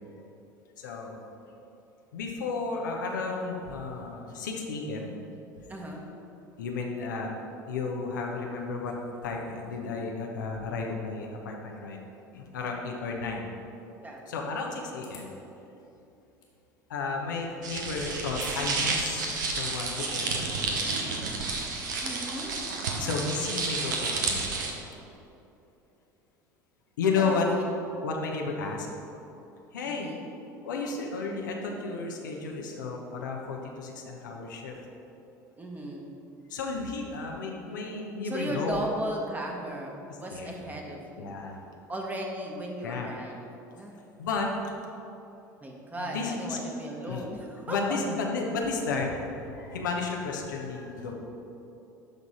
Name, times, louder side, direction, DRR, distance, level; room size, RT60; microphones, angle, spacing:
voice 1, 0.8-1.2 2.1-5.2 6.6-7.3 7.7-12.0 12.3-13.5 14.3-15.3 16.9-20.9 23.0-24.6 27.0-27.5 28.0-28.9 29.7-30.1 30.6-34.8 36.5-38.8 40.3-40.5 41.2-41.6 42.8-43.1 44.2-44.5 46.0-46.6 47.1-47.2 47.7-51.1, left 4 dB, 75° left, 0 dB, 1.0 m, -33 dB
voice 2, 5.7-6.0 12.7-13.0 14.0-14.2 22.0-22.6 27.2-27.4 29.8-30.3 35.6-36.1 38.2-41.3 41.9-43.5 43.7-44.0 45.6-48.0, right 1 dB, 15° right, 0 dB, 1.5 m, -36 dB
sound 1, 15.0-15.4 16.4-16.5 18.3-18.7 19.1-19.2 19.8-20.2, left 5 dB, 50° left, 1.9 m, -46 dB
sound 2, 17.6-24.7, right 3 dB, 70° right, 1.0 m, -31 dB
12.0 x 4.0 x 4.9 m, 2.9 s
figure-of-eight pair, 70°, 10 cm